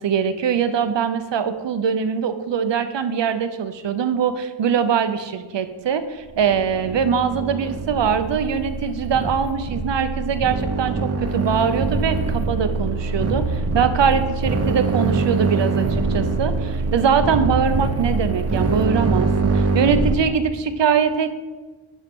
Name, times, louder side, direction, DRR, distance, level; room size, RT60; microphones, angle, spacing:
voice 1, 0.0-21.3, right 7 dB, 60° right, 10 dB, 0.7 m, -22 dB
sound 1, 6.3-20.2, right 3 dB, 30° right, 0.8 m, -24 dB
9.9 x 6.3 x 3.6 m, 1.3 s
wide cardioid pair, 150°, 49 cm